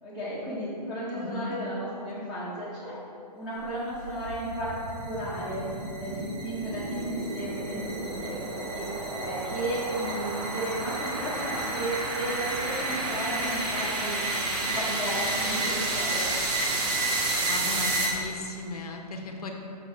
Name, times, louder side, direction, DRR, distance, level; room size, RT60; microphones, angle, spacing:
voice 1, 0.0-3.0 3.3-4.7 5.0-5.7 6.0-8.9 9.2-14.2 14.6-16.3, right 1 dB, 5° right, -13 dB, 1.1 m, -34 dB
voice 2, 1.1-1.5 17.5-19.5, left 3 dB, 60° left, 3 dB, 0.9 m, -37 dB
sound 1, 3.7-18.5, right 2 dB, 25° right, 0.8 m, -31 dB
6.8 x 5.5 x 3.2 m, 2.6 s
hypercardioid pair, 145°, 21 cm